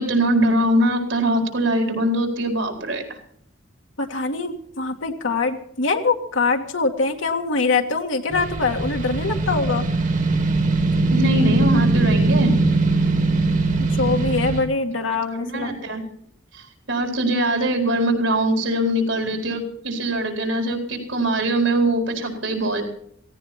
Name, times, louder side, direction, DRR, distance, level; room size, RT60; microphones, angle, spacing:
voice 1, 0.0-3.2 11.1-12.5 15.1-16.0 16.5-22.8, right 1 dB, 80° right, 3 dB, 4.5 m, -22 dB
voice 2, 4.0-9.8 13.8-15.9, left 4 dB, 80° left, 2 dB, 1.8 m, -23 dB
sound 1, 8.3-14.7, right 2 dB, 40° right, 1.6 m, -20 dB
17.0 x 17.0 x 4.3 m, 0.67 s
head